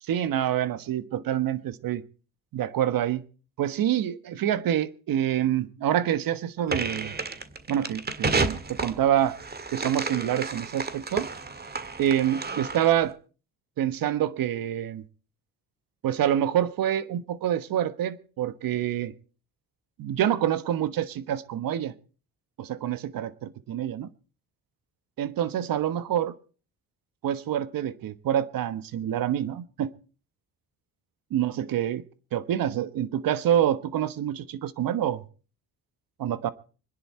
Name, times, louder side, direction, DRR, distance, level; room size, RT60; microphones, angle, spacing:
voice 1, 0.1-2.0 2.5-3.2 3.6-7.1 7.7-9.4 9.7-11.3 12.0-13.2 13.8-15.0 16.0-19.1 20.0-21.9 22.6-24.1 25.2-26.3 27.2-29.9 31.3-32.0 32.3-35.2 36.2-36.5, right 10 dB, 70° right, 13 dB, 1.4 m, -26 dB
sound 1, 6.7-13.0, right 3 dB, 25° right, 1.8 m, -31 dB
26.0 x 10.5 x 4.5 m, 0.38 s
cardioid pair, 95°, 36 cm